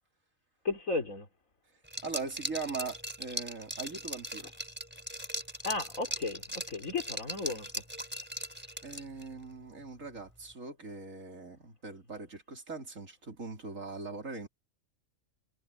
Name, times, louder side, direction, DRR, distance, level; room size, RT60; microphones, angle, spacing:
voice 1, 0.6-1.3 5.6-7.7, left 3 dB, 90° left, 4.2 m, -34 dB
Liquid, 1.9-9.3, equal, 10° right, 4.5 m, -39 dB
voice 2, 2.0-4.5 8.8-14.5, right 4 dB, 75° right, 4.1 m, -41 dB
omnidirectional pair, 1.4 m